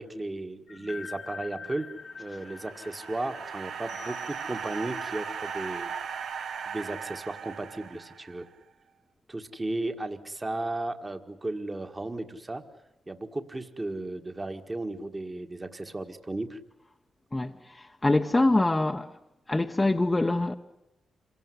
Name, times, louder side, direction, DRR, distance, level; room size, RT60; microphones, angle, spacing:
voice 1, 0.0-1.9 2.2-5.9 6.7-8.5 9.3-12.6 13.1-16.6, right 2 dB, 25° right, 1.7 m, -35 dB
sound 1, 0.7-6.7, left 5 dB, 55° left, 1.5 m, -46 dB
sound 2, 2.1-8.5, right 7 dB, 75° right, 1.2 m, -38 dB
voice 2, 17.3-19.1 19.5-20.5, left 2 dB, 20° left, 1.0 m, -24 dB
26.0 x 17.5 x 9.8 m
cardioid pair, 60°, 0 cm